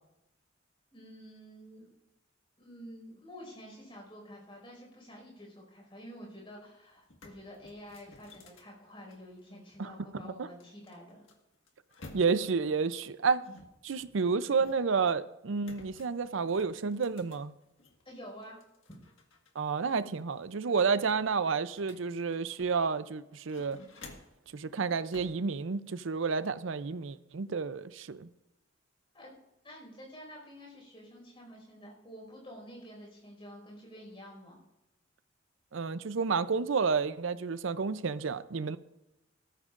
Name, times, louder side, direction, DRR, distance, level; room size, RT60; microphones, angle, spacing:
voice 1, 0.9-1.9 2.6-11.2 18.0-18.6 29.1-29.4 29.6-34.6, equal, 25° left, 5.2 m, -49 dB
sound 1, 6.6-6.7 7.0-9.7 10.6-12.6 13.4-15.0 15.6-18.0 18.4-19.5 19.8-19.9 20.3-22.9 23.3-24.5 25.1-25.4, left 2 dB, 75° left, 1.7 m, -54 dB
voice 2, 12.1-13.4 13.8-17.5 19.6-23.8 24.5-28.3 35.7-38.8, right 5 dB, 70° right, 0.5 m, -30 dB
19.5 x 13.5 x 2.5 m
head